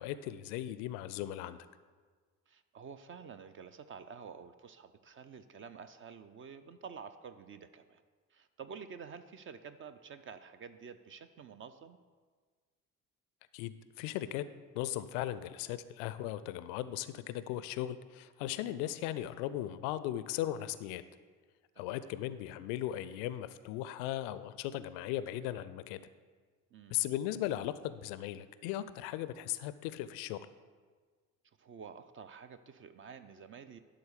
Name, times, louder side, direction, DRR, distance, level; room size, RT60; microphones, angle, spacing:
voice 1, 0.0-1.6 13.5-14.4 14.7-21.0 21.8-26.0 26.9-30.4, left 13 dB, 55° left, 14 dB, 0.5 m, -37 dB
voice 2, 2.5-8.0 8.3-12.0 21.7-22.1 26.7-27.0 31.6-33.8, right 6 dB, 30° right, 10 dB, 0.5 m, -49 dB
11.5 x 4.0 x 6.7 m, 1.5 s
figure-of-eight pair, 50°, 43 cm